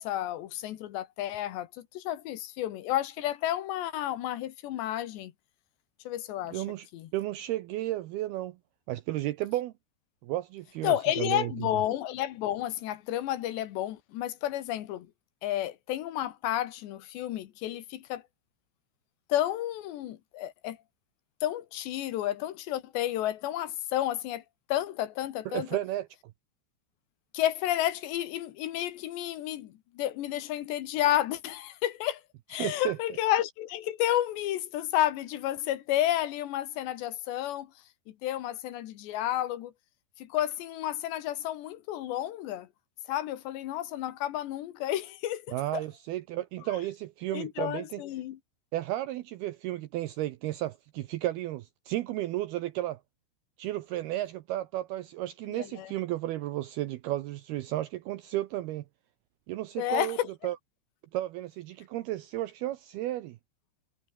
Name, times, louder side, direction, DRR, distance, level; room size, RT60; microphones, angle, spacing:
voice 1, 0.0-5.3 6.1-6.6 6.9-7.1 10.8-15.1 15.4-18.2 19.3-20.8 21.4-24.4 24.7-25.7 27.3-32.2 32.5-37.7 38.1-39.7 40.2-42.7 43.1-45.8 46.7-46.8 47.3-48.4 55.5-55.9 59.8-60.3, left 13 dB, 70° left, 3.4 m, -31 dB
voice 2, 6.5-6.9 7.1-8.6 8.9-9.7 10.2-11.5 25.5-26.1 32.6-33.0 45.5-48.0 48.7-53.0 53.6-58.8 59.5-60.2 60.4-60.6 61.1-63.4, right 15 dB, 80° right, 2.3 m, -33 dB
omnidirectional pair, 5.4 m